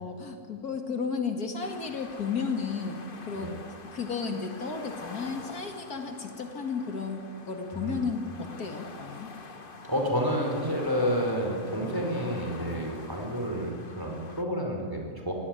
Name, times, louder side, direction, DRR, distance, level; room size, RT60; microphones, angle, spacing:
voice 1, 0.0-3.5 3.9-9.3, left 5 dB, 70° left, 5 dB, 2.6 m, -33 dB
sound 1, 1.6-14.4, left 4 dB, 35° left, 1.5 m, -46 dB
voice 2, 9.8-15.3, equal, 15° right, 1 dB, 5.0 m, -30 dB
24.0 x 18.5 x 9.3 m, 2.2 s
omnidirectional pair, 1.7 m